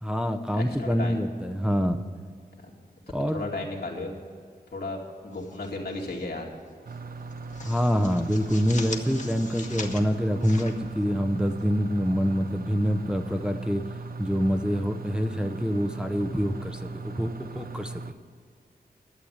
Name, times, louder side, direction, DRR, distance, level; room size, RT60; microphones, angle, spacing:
voice 1, 0.0-2.0 3.1-3.4 7.6-13.8 14.2-17.9, equal, 5° right, 6 dB, 0.6 m, -26 dB
voice 2, 0.5-1.2 3.3-4.1 4.7-6.5, left 2 dB, 80° left, -1 dB, 2.4 m, -34 dB
sound 1, 5.3-6.2 6.5-6.7 7.1-11.6, left 3 dB, 50° left, 1.2 m, -41 dB
sound 2, 6.8-18.1, right 3 dB, 65° right, 0.6 m, -38 dB
11.5 x 7.9 x 8.8 m, 2.1 s
wide cardioid pair, 105°, 16 cm